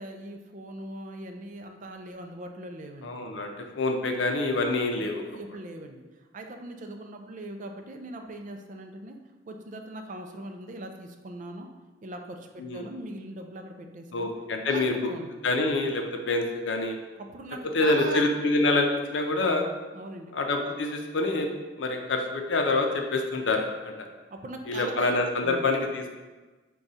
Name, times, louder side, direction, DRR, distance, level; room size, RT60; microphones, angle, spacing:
voice 1, 0.0-3.2 4.9-9.2 9.5-11.7 12.0-14.3 14.6-15.3 17.2-18.3 19.9-20.3 24.3-25.2 25.4-25.7, right 1 dB, 45° right, 4 dB, 0.4 m, -40 dB
voice 2, 3.0-5.2 12.6-12.9 14.1-14.9 15.4-17.0 17.7-19.7 20.3-21.5 21.8-23.9 24.7-26.1, left 2 dB, 75° left, 3 dB, 0.5 m, -26 dB
4.8 x 2.3 x 4.0 m, 1.2 s
head